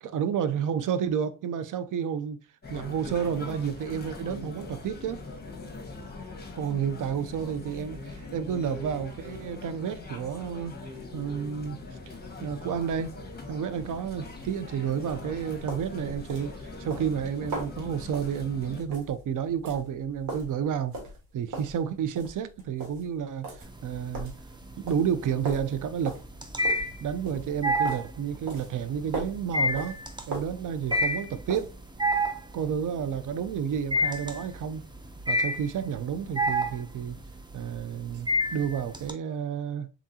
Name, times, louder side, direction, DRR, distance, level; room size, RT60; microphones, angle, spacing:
voice 1, 0.0-2.4 2.7-5.2 6.6-10.7 11.1-11.8 12.4-13.1 13.5-20.9 21.3-24.3 24.8-26.2 27.0-30.0 30.3-31.7 32.5-34.8 35.3-37.2 37.5-39.9, right 8 dB, 65° right, 0.6 m, -30 dB
sound 1, 2.6-18.8, left 3 dB, 30° left, 1.5 m, -42 dB
sound 2, 13.5-31.9, right 2 dB, 80° right, 1.9 m, -41 dB
sound 3, 23.6-24.3 24.6-39.1, equal, 15° right, 0.6 m, -29 dB
3.7 x 3.7 x 2.8 m
cardioid pair, 90°, 34 cm